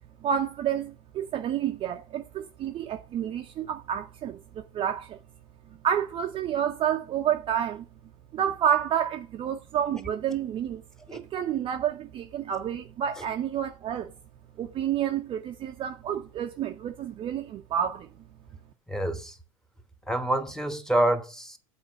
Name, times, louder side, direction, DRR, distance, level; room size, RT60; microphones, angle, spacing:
voice 1, 0.2-5.2 5.8-7.8 8.3-10.8 11.1-14.1 14.6-18.1, right 9 dB, 30° right, 0.6 m, -29 dB
voice 2, 18.9-19.4 20.1-21.6, right 1 dB, 5° left, 1.1 m, -27 dB
8.0 x 4.4 x 6.2 m
figure-of-eight pair, 80°, 18 cm